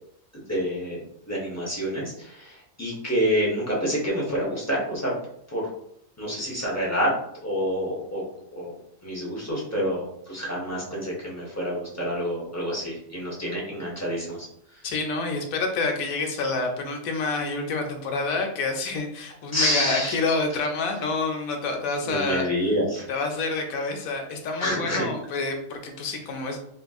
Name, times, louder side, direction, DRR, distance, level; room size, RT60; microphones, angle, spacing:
voice 1, 0.3-1.0 1.3-5.1 5.5-5.7 6.2-7.2 7.4-8.2 8.5-8.7 9.0-14.8 19.5-20.1 22.0-23.0 24.6-25.1, equal, 20° left, -5 dB, 0.5 m, -28 dB
voice 2, 14.8-22.5 23.1-26.6, left 3 dB, 85° left, 4 dB, 1.0 m, -28 dB
3.1 x 2.5 x 2.3 m, 0.71 s
omnidirectional pair, 1.4 m